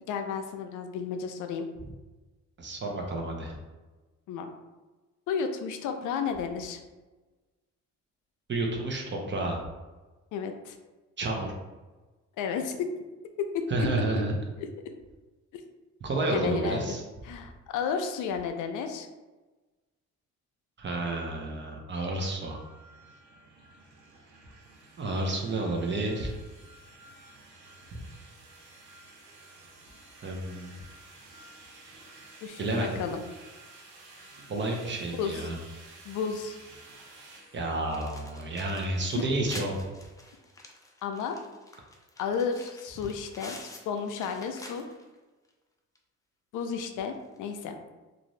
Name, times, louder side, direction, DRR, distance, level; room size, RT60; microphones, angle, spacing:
voice 1, 0.1-1.7 4.3-4.5 5.3-6.8 10.3-10.8 12.4-12.8 13.4-13.9 14.6-14.7 15.5-15.6 16.3-17.0 17.2-19.1 32.4-33.2 35.1-35.5 36.1-36.6 39.1-39.2 41.0-41.4 42.2-43.6 43.9-44.8 46.5-47.7, left 6 dB, 85° left, 6 dB, 0.5 m, -32 dB
voice 2, 2.6-3.6 8.5-9.6 11.2-11.5 13.7-14.3 16.0-17.0 20.8-22.6 25.0-26.3 27.9-28.0 30.2-30.7 32.6-33.0 34.5-35.6 37.5-39.8, right 2 dB, 40° right, 0 dB, 0.8 m, -30 dB
sound 1, 22.2-39.0, right 2 dB, 85° right, 0.9 m, -52 dB
sound 2, 37.9-45.1 45.5-45.6 45.9-46.0 47.2-47.4, left 1 dB, 10° left, 0.4 m, -48 dB
2.6 x 2.5 x 3.1 m, 1.2 s
cardioid pair, 90°, 30 cm